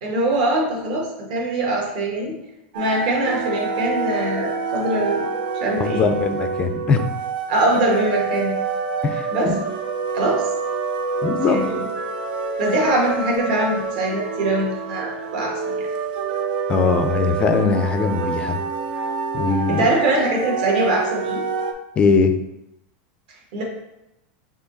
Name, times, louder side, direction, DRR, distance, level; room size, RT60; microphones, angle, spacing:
voice 1, 0.0-2.3 2.7-5.3 5.6-6.1 7.5-8.5 9.3-9.5 10.1-10.4 11.5-11.8 12.6-15.9 19.7-21.4 23.5-23.6, right 2 dB, 60° right, -2 dB, 1.4 m, -22 dB
sound 1, 2.7-21.7, right 4 dB, 75° right, 0.5 m, -27 dB
voice 2, 5.8-7.1 9.0-9.5 11.2-11.6 16.7-18.6 19.3-19.9 22.0-22.3, left 5 dB, 20° left, 8 dB, 0.3 m, -20 dB
4.7 x 2.8 x 3.9 m, 0.88 s
supercardioid pair, 170°, 5 cm